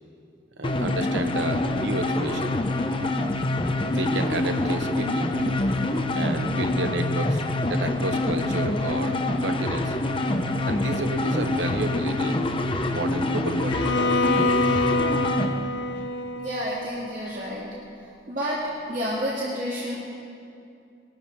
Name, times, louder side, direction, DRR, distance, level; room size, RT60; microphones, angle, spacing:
sound 1, 0.6-15.5, left 2 dB, 30° left, 0.7 m, -25 dB
voice 1, 0.6-2.6 3.8-5.6 6.1-7.4 7.7-10.3 10.6-12.4 12.9-14.0 16.0-16.1, right 2 dB, 85° right, 7 dB, 1.0 m, -31 dB
Bowed string instrument, 13.7-17.7, left 2 dB, 80° left, 0.7 m, -26 dB
voice 2, 16.3-17.7 17.9-18.6 18.9-20.0, equal, 45° right, -7 dB, 2.1 m, -30 dB
20.0 x 13.0 x 4.6 m, 2.6 s
head